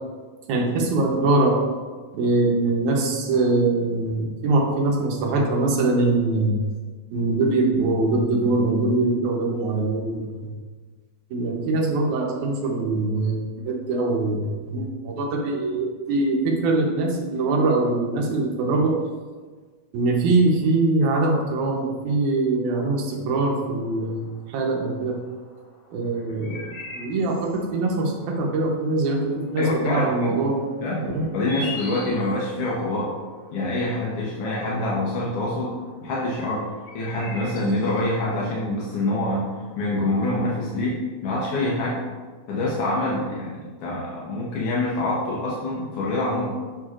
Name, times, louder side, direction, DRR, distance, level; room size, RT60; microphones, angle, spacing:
voice 1, 0.5-1.7 2.1-6.6 7.1-10.6 11.3-19.0 19.9-25.2 25.9-26.6 26.9-30.7 31.0-31.3, right 2 dB, 75° right, 0 dB, 2.2 m, -23 dB
sound 1, 23.6-40.2, left 2 dB, 85° left, 3.2 m, -44 dB
voice 2, 29.6-30.4 30.8-31.1 31.3-33.1 33.5-35.7 36.0-36.6 36.9-39.4 39.8-41.0 41.2-42.0 42.5-46.6, left 1 dB, 65° left, -5 dB, 1.5 m, -25 dB
6.9 x 6.2 x 2.4 m, 1.4 s
omnidirectional pair, 3.6 m